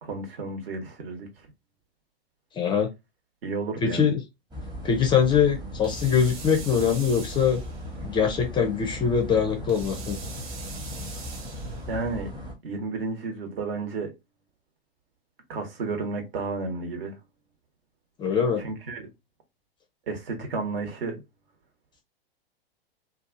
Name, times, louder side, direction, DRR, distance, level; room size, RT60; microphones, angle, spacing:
voice 1, 0.0-1.3 3.4-4.1 11.9-12.3 12.6-14.1 15.5-17.2 18.6-19.1 20.1-21.2, right 3 dB, 70° right, 1.2 m, -32 dB
voice 2, 2.5-2.9 3.8-4.2 4.8-7.6 8.0-10.2 18.2-18.6, left 7 dB, 15° left, 0.4 m, -23 dB
sound 1, 4.5-12.5, equal, 15° right, 0.8 m, -37 dB
sound 2, 5.8-8.0 9.7-12.0, right 5 dB, 50° right, 0.9 m, -43 dB
2.6 x 2.4 x 2.5 m
hypercardioid pair, 115°, 31 cm